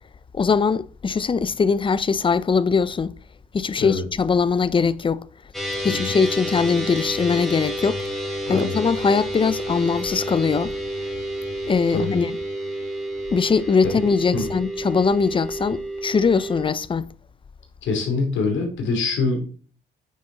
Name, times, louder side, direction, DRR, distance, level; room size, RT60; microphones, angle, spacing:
voice 1, 0.3-3.1 3.5-5.2 5.8-8.0 8.5-10.7 11.7-12.4 13.3-17.1, left 5 dB, 25° left, 0.4 m, -21 dB
sound 1, 5.5-16.7, right 1 dB, ahead, 2.8 m, -30 dB
voice 2, 8.5-8.8 11.9-12.2 14.3-14.5 17.8-19.5, left 3 dB, 70° left, 2.7 m, -24 dB
9.2 x 6.1 x 3.8 m
cardioid pair, 90°, 20 cm